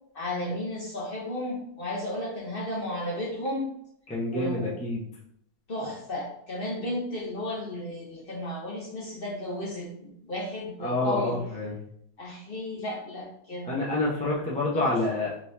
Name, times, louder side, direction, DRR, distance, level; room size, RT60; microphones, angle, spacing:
voice 1, 0.1-3.7 4.3-4.8 5.7-11.4 12.2-13.7 14.7-15.2, left 1 dB, 45° left, -3 dB, 0.9 m, -34 dB
voice 2, 4.1-5.0 10.8-11.8 13.6-15.3, left 2 dB, 10° left, -5 dB, 0.5 m, -28 dB
4.3 x 2.9 x 3.4 m, 0.71 s
omnidirectional pair, 1.6 m